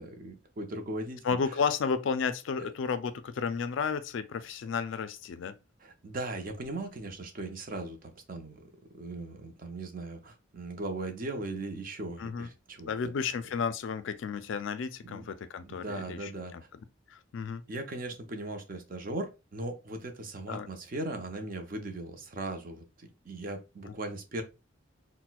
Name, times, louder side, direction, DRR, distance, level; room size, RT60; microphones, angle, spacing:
voice 1, 0.0-1.6 2.6-2.7 5.8-13.4 15.0-15.3 15.6-16.5 17.7-24.4, right 2 dB, 45° right, 0.5 m, -39 dB
voice 2, 1.2-5.5 12.2-12.5 12.9-16.3 17.3-17.6 20.5-20.7, left 5 dB, 70° left, 0.3 m, -32 dB
4.1 x 2.1 x 2.2 m
head